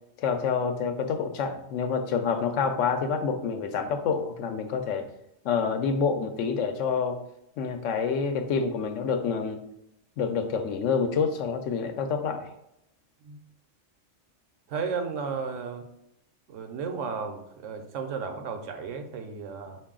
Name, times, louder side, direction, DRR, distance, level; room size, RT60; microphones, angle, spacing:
voice 1, 0.2-5.1 5.4-7.2 7.6-9.6 10.2-12.5, left 5 dB, 75° left, 7 dB, 0.9 m, -27 dB
voice 2, 14.7-15.9 16.5-19.8, right 5 dB, 80° right, 6 dB, 1.0 m, -34 dB
4.7 x 2.6 x 3.6 m, 0.80 s
omnidirectional pair, 1.3 m